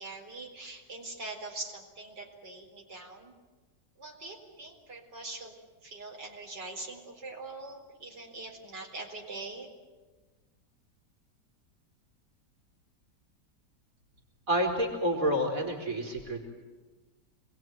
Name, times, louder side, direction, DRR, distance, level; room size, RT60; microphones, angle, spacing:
voice 1, 0.0-3.3 4.0-5.5 5.8-9.7, right 2 dB, 85° right, 0 dB, 4.9 m, -43 dB
voice 2, 14.5-16.6, equal, 50° right, 0 dB, 4.3 m, -29 dB
27.0 x 21.0 x 9.3 m, 1.3 s
omnidirectional pair, 1.8 m